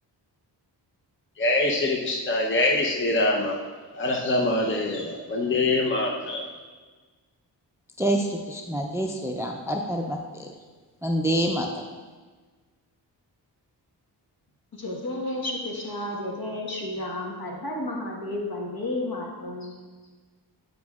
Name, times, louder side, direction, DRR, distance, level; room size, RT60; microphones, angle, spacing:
voice 1, 1.4-3.6 3.9-6.4, left 2 dB, 30° left, -1 dB, 0.7 m, -24 dB
voice 2, 8.0-10.5 11.0-11.7, right 1 dB, 5° right, 2 dB, 0.5 m, -27 dB
voice 3, 14.7-19.7, left 1 dB, 55° left, -1 dB, 1.4 m, -32 dB
9.2 x 5.2 x 2.4 m, 1.4 s
cardioid pair, 70°, 42 cm